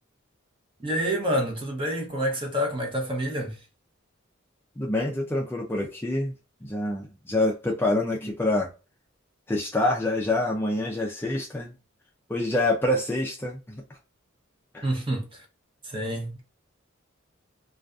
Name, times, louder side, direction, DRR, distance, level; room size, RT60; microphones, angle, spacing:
voice 1, 0.8-3.6 14.8-15.4 15.8-16.4, equal, 25° right, 0.7 m, -28 dB
voice 2, 4.8-6.3 6.6-8.7 9.5-11.7 12.3-13.8 14.7-14.9, left 1 dB, 10° left, 0.3 m, -26 dB
2.4 x 2.3 x 2.3 m
head